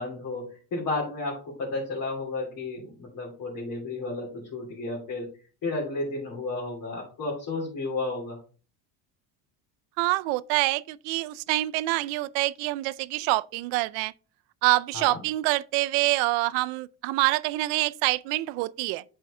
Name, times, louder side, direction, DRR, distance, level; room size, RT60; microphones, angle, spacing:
voice 1, 0.0-5.3 5.6-8.4 14.9-15.2, left 2 dB, 45° left, 3.0 m, -32 dB
voice 2, 10.0-14.1 14.6-19.0, right 19 dB, 80° right, 0.5 m, -26 dB
7.7 x 4.6 x 3.6 m
cardioid pair, 125°, 47 cm